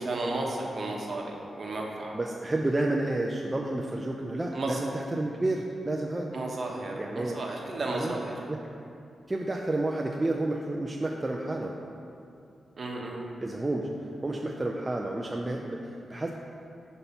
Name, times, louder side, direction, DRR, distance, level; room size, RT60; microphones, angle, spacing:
voice 1, 0.0-2.2 4.5-4.9 6.3-8.4 12.8-13.2, right 2 dB, 45° right, -1 dB, 0.8 m, -33 dB
voice 2, 2.1-6.3 7.0-7.4 7.9-8.1 8.5-8.6 9.3-11.8 13.4-13.9 14.2-16.3, right 2 dB, 20° right, 0 dB, 0.3 m, -30 dB
5.7 x 4.1 x 5.5 m, 2.6 s
wide cardioid pair, 150°, 0 cm